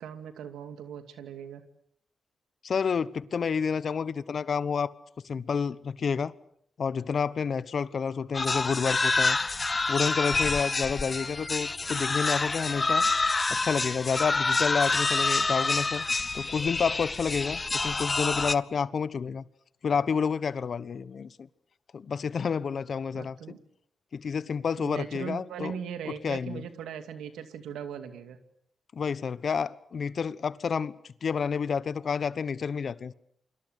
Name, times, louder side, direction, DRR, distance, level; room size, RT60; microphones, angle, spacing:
voice 1, 0.0-1.6 23.1-23.6 24.8-28.4, right 8 dB, 90° right, 2.4 m, -39 dB
voice 2, 2.6-4.9 5.2-6.3 6.8-9.4 9.9-13.1 13.5-16.0 16.3-19.4 19.8-21.5 21.9-23.6 24.1-25.8 26.1-26.6 28.9-30.9 31.2-33.1, left 6 dB, 65° left, 1.0 m, -29 dB
sound 1, 8.3-18.6, left 3 dB, 40° left, 1.0 m, -27 dB
29.0 x 25.0 x 6.7 m
supercardioid pair, 45°, 0 cm